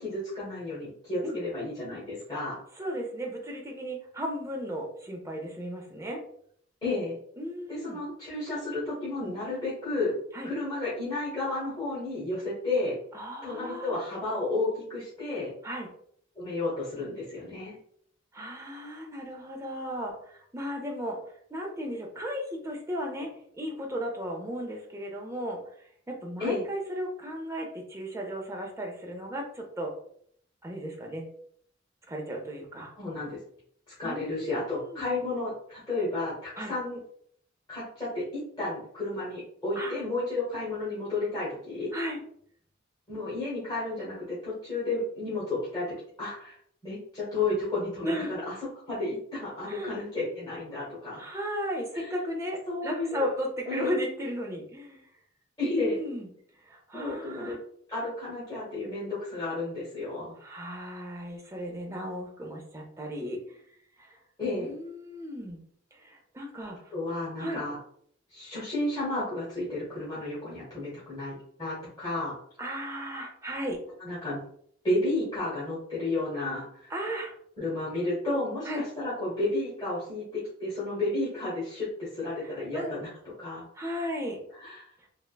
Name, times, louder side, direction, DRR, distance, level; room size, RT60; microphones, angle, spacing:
voice 1, 0.0-2.6 6.8-7.2 7.7-10.2 10.4-13.0 13.4-15.5 16.3-17.7 26.4-26.6 33.0-33.4 34.0-37.0 37.7-41.9 43.1-46.5 46.8-48.5 48.9-51.2 51.9-52.1 52.7-53.3 53.7-53.9 55.6-56.0 56.9-57.6 57.9-60.3 64.4-64.7 66.9-67.8 68.3-72.3 74.0-74.4 74.8-76.9 77.6-83.1 83.4-83.6 84.6-84.8, left 2 dB, 25° left, -11 dB, 1.1 m, -32 dB
voice 2, 2.8-6.2 7.4-8.0 10.3-10.5 13.1-14.0 15.6-15.9 18.3-21.2 21.5-25.6 26.1-29.9 30.6-31.3 32.1-32.9 34.0-35.0 36.6-36.7 39.7-40.0 41.9-42.2 48.0-48.3 49.6-50.0 51.2-55.0 55.7-56.3 56.6-57.6 60.4-63.6 64.0-64.2 64.6-65.6 65.9-66.8 67.4-67.6 72.6-73.8 76.9-77.3 78.7-78.8 82.4-82.9 83.7-84.4, equal, 15° right, 0 dB, 0.5 m, -35 dB
3.3 x 2.1 x 2.3 m, 0.64 s
head